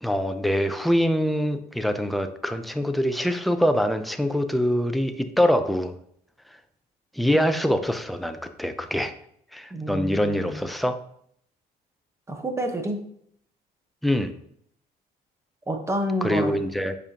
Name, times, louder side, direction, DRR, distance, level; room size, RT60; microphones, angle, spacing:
voice 1, 0.0-5.9 7.2-9.1 9.5-11.0 14.0-14.3 16.2-17.0, equal, ahead, 7 dB, 0.5 m, -24 dB
voice 2, 9.7-10.6 12.3-13.0 15.7-16.6, equal, 15° right, 4 dB, 1.1 m, -29 dB
7.2 x 5.2 x 2.9 m, 0.67 s
cardioid pair, 110°, 17 cm